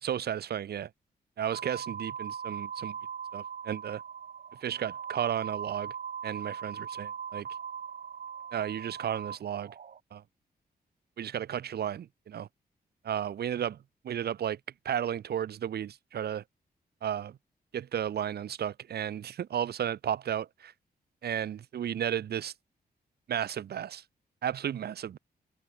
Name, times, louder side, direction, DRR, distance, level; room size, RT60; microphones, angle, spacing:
voice 1, 0.0-0.9 1.4-2.9 3.3-4.0 4.6-5.9 6.2-7.4 8.5-9.7 10.1-10.2 11.2-12.5 13.0-13.7 14.0-14.6 14.8-16.4 17.0-17.4 17.7-20.7 21.2-22.5 23.3-24.0 24.4-25.2, right 9 dB, 80° right, 1.5 m, -33 dB
sound 1, 1.5-10.0, right 7 dB, 55° right, 3.3 m, -40 dB
open air
wide cardioid pair, 155°, 16 cm